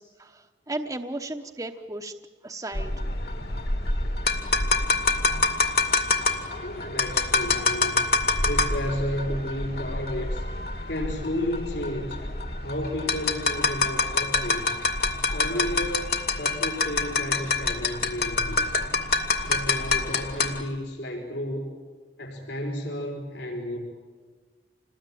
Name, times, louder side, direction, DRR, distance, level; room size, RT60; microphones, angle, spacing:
voice 1, 0.0-2.1 2.4-3.1, right 2 dB, 20° right, 4 dB, 1.0 m, -35 dB
sound 1, 2.7-20.6, left 3 dB, 60° left, 2.3 m, -26 dB
voice 2, 6.6-8.0 8.4-10.4 10.9-12.2 12.6-14.8 15.3-18.9 19.4-21.7 22.2-23.8, left 1 dB, 85° left, -2 dB, 5.0 m, -32 dB
28.0 x 20.5 x 9.2 m, 1.4 s
head